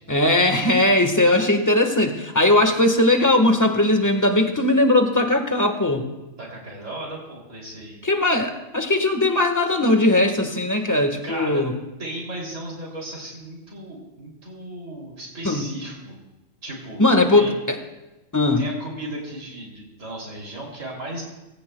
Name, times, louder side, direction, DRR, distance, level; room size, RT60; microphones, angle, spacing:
voice 1, 0.1-6.1 8.0-11.7 15.4-15.7 17.0-17.8 18.3-18.6, left 2 dB, 15° left, 5 dB, 1.3 m, -19 dB
voice 2, 6.4-8.0 10.7-10.8 11.2-11.6 12.0-16.1 16.6-17.0 17.3-17.5 18.6-21.2, right 1 dB, 70° right, -3 dB, 3.5 m, -35 dB
24.0 x 16.0 x 2.3 m, 1.0 s
omnidirectional pair, 1.3 m